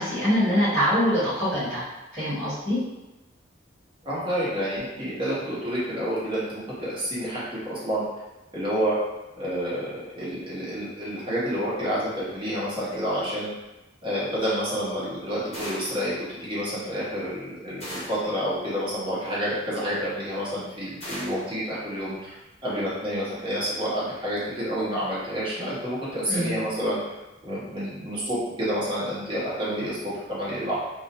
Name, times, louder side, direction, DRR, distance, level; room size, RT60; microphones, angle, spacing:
voice 1, 0.0-1.8 2.1-2.8 26.3-26.5, equal, ahead, -15 dB, 1.1 m, -24 dB
voice 2, 4.0-8.0 8.5-9.0 9.4-13.5 14.0-22.4 22.6-27.0 27.4-30.7, equal, 25° right, -9 dB, 0.9 m, -29 dB
sound 1, 15.5-16.1 17.8-18.3 21.0-21.5, equal, 35° left, 0.9 m, -37 dB
2.4 x 2.1 x 2.8 m, 1.0 s
head